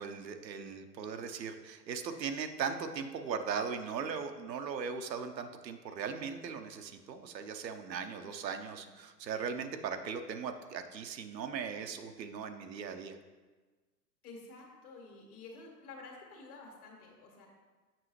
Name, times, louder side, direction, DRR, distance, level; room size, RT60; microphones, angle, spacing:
voice 1, 0.0-13.2, right 6 dB, 80° right, 7 dB, 0.7 m, -38 dB
voice 2, 8.2-8.9 14.2-17.5, left 3 dB, 60° left, 0 dB, 1.8 m, -51 dB
7.5 x 5.4 x 3.1 m, 1.3 s
hypercardioid pair, 105°, 50 cm